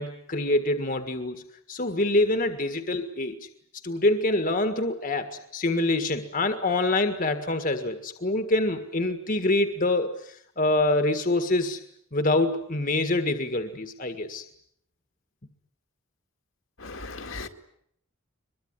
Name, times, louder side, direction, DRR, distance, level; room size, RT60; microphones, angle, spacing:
voice 1, 0.0-3.5 3.8-11.8 12.1-14.4, left 2 dB, 40° left, 1.7 m, -26 dB
voice 2, 16.8-17.5, left 3 dB, 65° left, 2.2 m, -37 dB
23.0 x 22.5 x 9.7 m
head